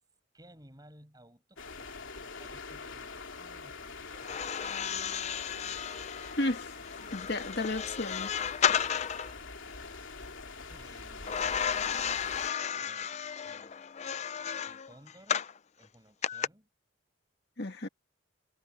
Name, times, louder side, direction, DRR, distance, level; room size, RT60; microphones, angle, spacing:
voice 1, 0.3-4.5 10.7-11.9 12.7-14.2 14.6-15.5 15.7-16.7, right 1 dB, 20° right, 7.9 m, -58 dB
sound 1, 1.6-12.5, left 4 dB, 75° left, 2.9 m, -44 dB
sound 2, 4.2-9.3 11.3-15.6 16.2-16.5, left 8 dB, 35° left, 0.4 m, -33 dB
voice 2, 6.4-6.7 7.1-8.3 17.6-17.9, left 2 dB, 55° left, 2.1 m, -33 dB
head